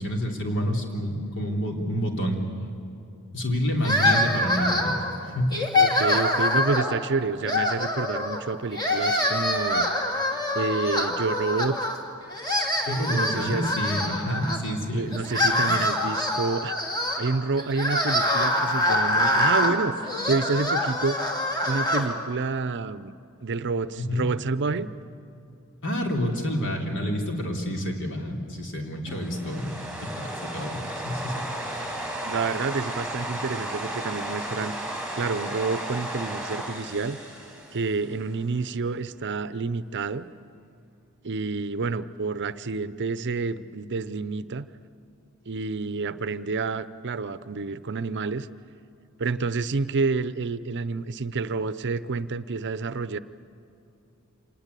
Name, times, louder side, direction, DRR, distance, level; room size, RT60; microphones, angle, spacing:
voice 1, 0.0-2.4 3.3-5.0 5.2-5.6 12.9-15.1 15.4-15.8 24.0-24.2 25.8-31.8, equal, 60° left, 2 dB, 3.5 m, -29 dB
sound 1, 3.8-5.1 5.5-7.0 7.4-8.4 8.7-12.0 12.3-14.6 15.1-22.1, left 1 dB, 20° left, 2.5 m, -25 dB
voice 2, 5.7-9.9 10.5-11.8 13.1-13.7 14.9-16.8 17.2-21.2 21.6-23.1 23.4-24.9 32.2-34.8 35.2-37.2 37.7-40.3 41.2-44.7 45.5-48.5 49.2-53.2, right 4 dB, 55° right, 14 dB, 0.7 m, -28 dB
sound 2, 29.1-38.3, right 1 dB, 5° right, 6.6 m, -34 dB
26.0 x 19.5 x 8.3 m, 2.6 s
head